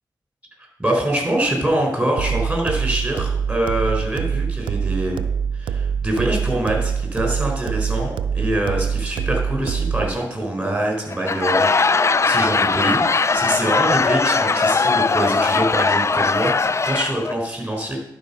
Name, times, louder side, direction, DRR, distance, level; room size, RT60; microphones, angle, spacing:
voice 1, 0.8-5.2 5.5-18.0, right 1 dB, 10° right, 1 dB, 4.3 m, -24 dB
sound 1, 2.2-10.2, right 7 dB, 85° right, 0.4 m, -24 dB
Laughter / Crowd, 11.1-17.3, left 4 dB, 35° left, 0.3 m, -19 dB
11.0 x 4.8 x 5.6 m, 0.82 s
cardioid pair, 40°, 8 cm